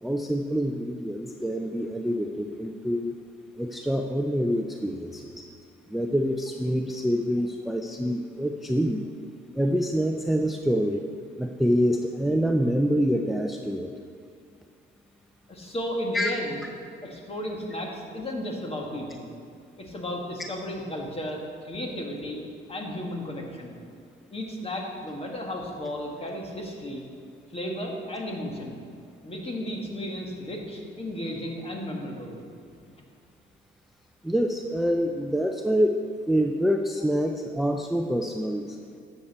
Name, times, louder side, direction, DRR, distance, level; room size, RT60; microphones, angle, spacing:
voice 1, 0.0-3.1 3.6-5.4 5.9-9.1 9.5-11.0 11.4-13.9 16.1-16.3 34.2-36.0 36.3-38.8, equal, ahead, 3 dB, 0.5 m, -26 dB
voice 2, 15.5-16.6 17.0-19.3 19.8-22.4 22.7-23.8 24.3-27.0 27.5-28.8 29.2-32.4 32.9-33.0, left 1 dB, 30° left, 0 dB, 1.8 m, -34 dB
11.5 x 7.4 x 4.3 m, 2.4 s
cardioid pair, 90°, 20 cm